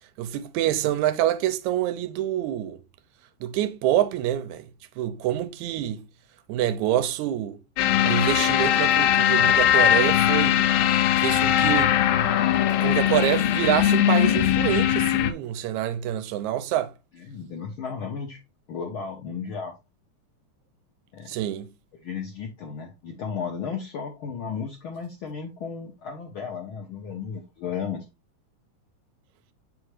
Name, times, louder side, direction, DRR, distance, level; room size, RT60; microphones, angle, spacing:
voice 1, 0.2-2.8 3.4-4.7 5.0-6.0 6.5-7.6 8.0-10.7 11.2-12.0 12.8-16.9 21.3-21.7, right 12 dB, 80° right, 1.9 m, -26 dB
sound 1, 7.8-15.3, left 11 dB, 85° left, 2.1 m, -20 dB
voice 2, 17.2-18.4 18.7-19.7 21.1-21.3 22.0-28.0, left 6 dB, 70° left, 1.2 m, -34 dB
7.3 x 4.9 x 3.1 m
omnidirectional pair, 3.5 m